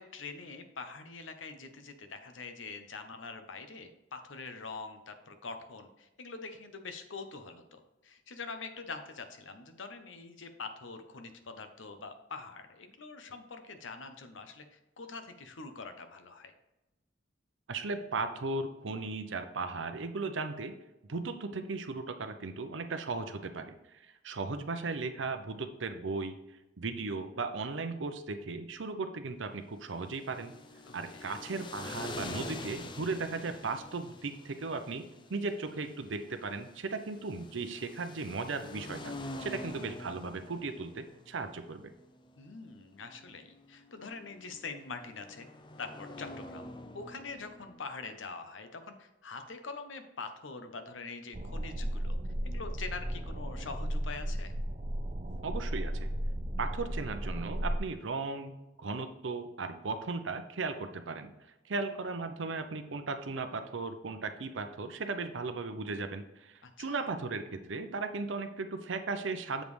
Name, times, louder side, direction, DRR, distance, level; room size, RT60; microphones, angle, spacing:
voice 1, 0.0-16.5 30.9-31.4 42.4-45.5 45.8-52.2 52.4-54.5 66.6-67.0, left 4 dB, 85° left, 7 dB, 0.8 m, -44 dB
voice 2, 17.7-20.7 21.1-23.7 24.2-26.4 26.8-30.5 30.9-35.0 35.3-39.1 39.4-41.9 55.4-56.1 56.6-61.3 61.7-69.6, right 3 dB, 80° right, 8 dB, 0.7 m, -36 dB
sound 1, 29.9-47.8, left 2 dB, 25° left, 0.5 m, -46 dB
sound 2, 51.3-57.8, equal, 40° right, 0.6 m, -35 dB
7.4 x 5.2 x 3.2 m, 0.96 s
head